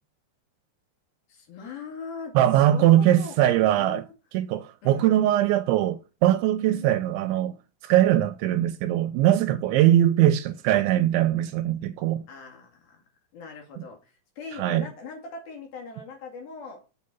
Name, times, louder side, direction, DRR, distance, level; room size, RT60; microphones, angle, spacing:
voice 1, 1.3-4.0 4.8-5.2 6.6-6.9 9.8-9.9 12.3-13.0 13.3-16.8, left 4 dB, 55° left, 3.5 m, -41 dB
voice 2, 2.3-4.0 4.3-7.6 7.8-12.2 14.5-14.9, right 12 dB, 80° right, 2.8 m, -21 dB
7.6 x 7.2 x 5.4 m
omnidirectional pair, 5.6 m